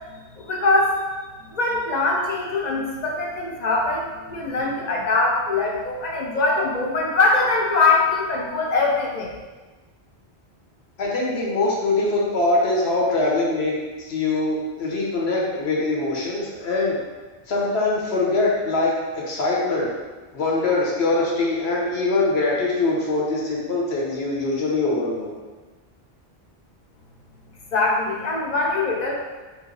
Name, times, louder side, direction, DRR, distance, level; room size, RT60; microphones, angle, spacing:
voice 1, 0.1-1.0 1.4-9.3 27.7-29.2, left 3 dB, 50° left, -1 dB, 0.7 m, -22 dB
voice 2, 11.0-17.0 17.5-19.9 20.3-25.3, left 2 dB, 80° left, -3 dB, 1.2 m, -23 dB
3.6 x 3.0 x 3.8 m, 1.3 s
omnidirectional pair, 1.1 m